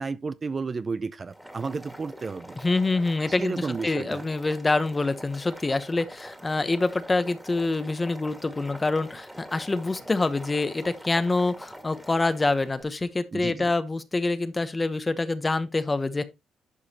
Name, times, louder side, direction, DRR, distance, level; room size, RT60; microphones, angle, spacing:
voice 1, 0.0-2.6 3.3-4.3 13.3-13.7, right 4 dB, 35° right, 0.5 m, -32 dB
Boiling, 1.2-12.8, equal, 5° right, 2.0 m, -44 dB
voice 2, 2.6-16.2, left 3 dB, 20° left, 1.0 m, -26 dB
11.0 x 4.8 x 2.9 m
cardioid pair, 90°, 0 cm